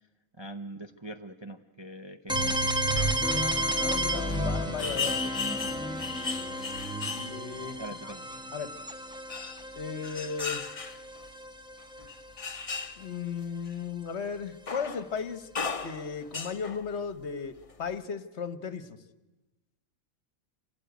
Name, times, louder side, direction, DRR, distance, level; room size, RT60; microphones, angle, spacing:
voice 1, 0.4-2.7 7.8-8.2, right 1 dB, 25° right, 5 dB, 0.7 m, -42 dB
sound 1, 2.3-12.0, right 1 dB, 5° right, 1.3 m, -32 dB
sound 2, 2.6-2.7 2.9-3.3 4.3-4.4 4.8-7.7 9.3-11.3 12.0-13.0 13.7-13.8 14.7-15.2 15.5-16.9 17.6-17.7, left 5 dB, 30° left, 0.8 m, -35 dB
voice 2, 3.8-5.3 7.1-7.8 8.5-8.7 9.7-10.6 13.0-15.5 15.8-19.0, left 6 dB, 55° left, 12 dB, 1.3 m, -36 dB
26.5 x 17.0 x 9.2 m, 1.1 s
omnidirectional pair, 1.5 m